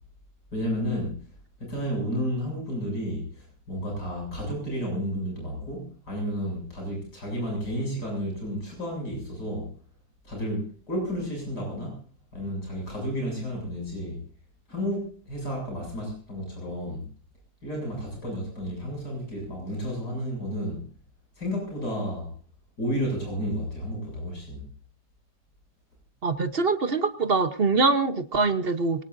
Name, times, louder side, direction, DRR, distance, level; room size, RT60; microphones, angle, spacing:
voice 1, 0.5-1.2 1.6-9.7 10.2-12.0 12.3-14.2 14.7-17.1 17.6-20.8 21.4-22.3 22.8-24.6, equal, 70° left, 0 dB, 8.1 m, -32 dB
voice 2, 26.2-29.0, right 4 dB, 40° right, 10 dB, 1.0 m, -24 dB
24.0 x 18.5 x 2.7 m, 0.39 s
omnidirectional pair, 1.8 m